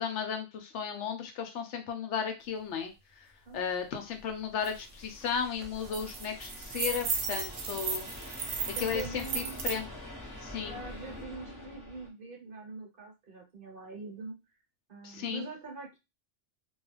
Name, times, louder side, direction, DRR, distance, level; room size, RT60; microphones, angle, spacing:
voice 1, 0.0-3.3 3.5-8.1 8.8-9.9 10.4-10.8 15.0-15.5, left 7 dB, 75° left, 5 dB, 0.9 m, -35 dB
sound 1, 3.8-12.1, left 1 dB, 20° left, 0.8 m, -46 dB
sound 2, 4.6-4.7 5.1-5.3 5.6-9.8, right 5 dB, 75° right, 1.0 m, -35 dB
voice 2, 8.6-9.6 10.6-14.4 14.9-16.0, right 3 dB, 50° right, 0 dB, 1.0 m, -43 dB
2.3 x 2.3 x 3.2 m, 0.25 s
omnidirectional pair, 1.3 m